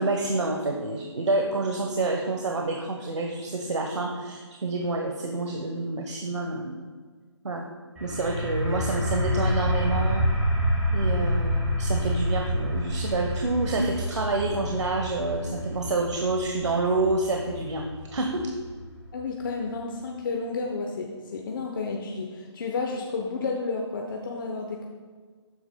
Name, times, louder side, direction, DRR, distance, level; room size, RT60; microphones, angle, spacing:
voice 1, 0.0-6.7 7.4-7.7 8.0-10.2 10.9-18.5, right 2 dB, 75° right, 2 dB, 1.1 m, -28 dB
sound 1, 8.0-19.4, equal, 5° right, 1.8 m, -28 dB
voice 2, 19.1-24.9, left 4 dB, 45° left, 1 dB, 0.9 m, -31 dB
12.5 x 9.1 x 2.3 m, 1.5 s
figure-of-eight pair, 155°, 15 cm